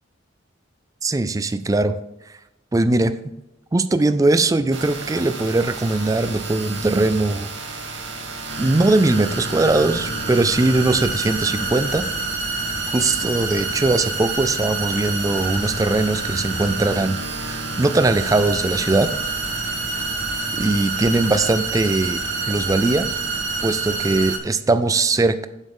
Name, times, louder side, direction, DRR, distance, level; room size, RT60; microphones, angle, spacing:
voice 1, 1.0-2.0 2.7-3.1 3.7-7.5 8.6-12.0 12.5-12.7 12.9-19.1 20.6-22.2 22.5-23.1 23.6-25.5, right 2 dB, 20° right, 11 dB, 0.4 m, -20 dB
sound 1, 4.7-24.4, right 3 dB, 70° right, 1.4 m, -28 dB
7.6 x 7.2 x 3.7 m, 0.92 s
head